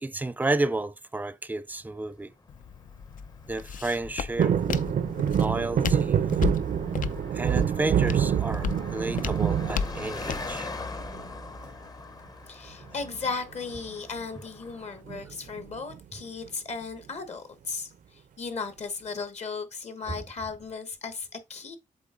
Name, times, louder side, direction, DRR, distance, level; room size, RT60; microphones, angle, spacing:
voice 1, 0.0-2.3 3.5-4.5 5.4-6.3 7.3-10.7 20.1-20.2, right 2 dB, 10° right, 0.5 m, -31 dB
Car passing by, 1.8-15.0, left 3 dB, 30° left, 0.7 m, -43 dB
Walk footsteps, 2.5-10.5, left 6 dB, 75° left, 0.5 m, -35 dB
sound 1, 4.4-10.6 11.0-11.6 12.9-13.3 13.5-13.6 13.9-14.2 15.1-16.0 16.5-16.6, right 8 dB, 70° right, 0.5 m, -26 dB
voice 2, 12.5-17.9 18.4-21.8, left 4 dB, 50° left, 1.1 m, -36 dB
7.7 x 3.6 x 3.7 m
wide cardioid pair, 120°, 14 cm